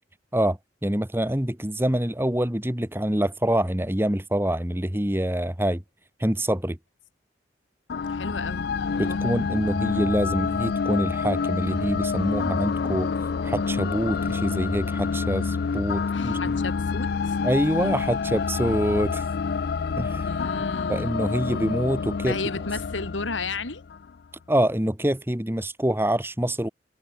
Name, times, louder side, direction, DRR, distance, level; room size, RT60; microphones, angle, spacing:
voice 1, 0.3-5.8 6.2-6.8 9.0-13.1 13.4-16.5 17.4-19.2 20.0-20.4 20.9-22.4 24.5-26.7, right 1 dB, 10° right, 1.6 m, -25 dB
sound 1, 7.9-24.1, left 5 dB, 55° left, 0.4 m, -28 dB
voice 2, 8.0-9.3 16.1-17.4 20.3-21.2 22.3-23.8, left 3 dB, 90° left, 2.8 m, -33 dB
head